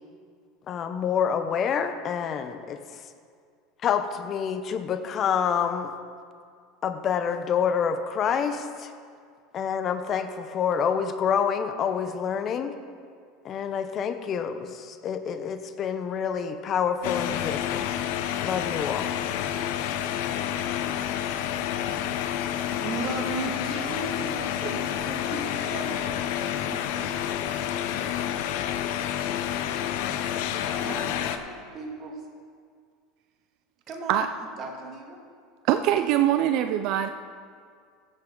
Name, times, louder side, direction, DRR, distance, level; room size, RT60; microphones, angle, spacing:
voice 1, 0.7-2.8 3.8-5.9 6.8-8.9 9.5-12.7 13.4-17.8 18.4-19.1, left 7 dB, 40° left, 9 dB, 0.8 m, -27 dB
sound 1, 17.0-31.4, left 10 dB, 70° left, 0.7 m, -29 dB
voice 2, 22.6-27.1 30.6-32.2 33.9-34.2 34.6-35.2, right 3 dB, 40° right, 1 dB, 2.2 m, -36 dB
voice 3, 35.6-37.1, right 11 dB, 60° right, 9 dB, 0.4 m, -23 dB
14.5 x 8.9 x 3.9 m, 2.1 s
supercardioid pair, 105°, 0 cm